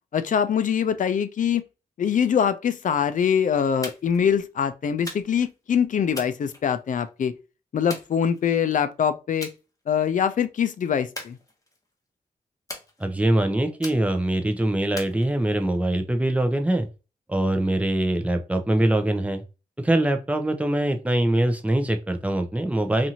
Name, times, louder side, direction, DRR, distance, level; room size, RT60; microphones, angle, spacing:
voice 1, 0.1-1.6 2.0-7.3 7.7-9.5 9.9-11.4, left 8 dB, 60° left, 0.4 m, -23 dB
sound 1, 3.8-4.2 5.1-5.5 6.1-7.1 7.9-8.7 9.4-9.6 10.0-10.4 11.1-11.9 12.7-13.3 13.8-14.4 15.0-15.8, left 2 dB, 20° left, 0.8 m, -40 dB
voice 2, 13.0-16.9 17.3-19.4 19.8-23.1, right 1 dB, 10° right, 0.6 m, -23 dB
2.6 x 2.5 x 2.8 m
cardioid pair, 85°, 16 cm